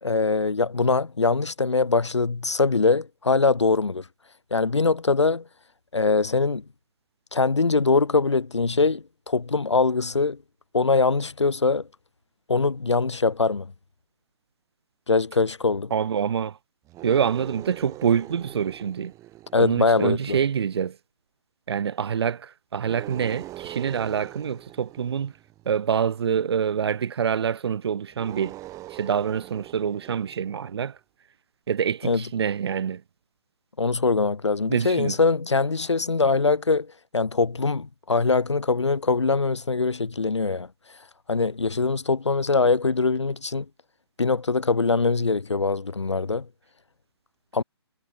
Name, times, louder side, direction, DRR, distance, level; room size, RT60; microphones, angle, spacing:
voice 1, 0.0-4.0 4.5-5.4 5.9-6.6 7.3-10.4 10.7-11.9 12.5-13.7 15.1-15.9 19.5-20.4 32.0-32.2 33.8-36.9 37.1-40.7 41.3-43.7 44.2-46.5 47.5-47.6, left 4 dB, 90° left, 2.0 m, -22 dB
voice 2, 15.9-16.6 17.0-19.1 19.6-21.0 21.7-25.3 25.6-28.5 28.9-30.9 31.7-33.0 34.7-35.2, right 7 dB, 65° right, 1.1 m, -26 dB
sound 1, 16.8-20.4 22.8-25.9 28.1-30.8, right 16 dB, 20° right, 5.3 m, -42 dB
hypercardioid pair, 135°, 14 cm